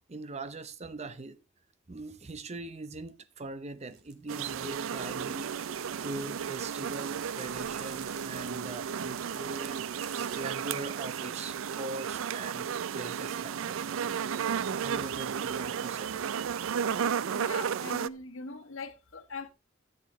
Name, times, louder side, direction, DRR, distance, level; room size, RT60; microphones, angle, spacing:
voice 1, 0.0-1.4 1.9-5.5 6.0-9.9 10.3-14.2 14.7-16.2, right 2 dB, 35° right, 0.8 m, -41 dB
sound 1, 3.9-10.7, right 7 dB, 55° right, 1.4 m, -52 dB
sound 2, 4.3-18.1, right 7 dB, 80° right, 0.4 m, -33 dB
voice 2, 17.3-19.5, left 3 dB, 80° left, 1.3 m, -41 dB
12.5 x 7.9 x 3.0 m
head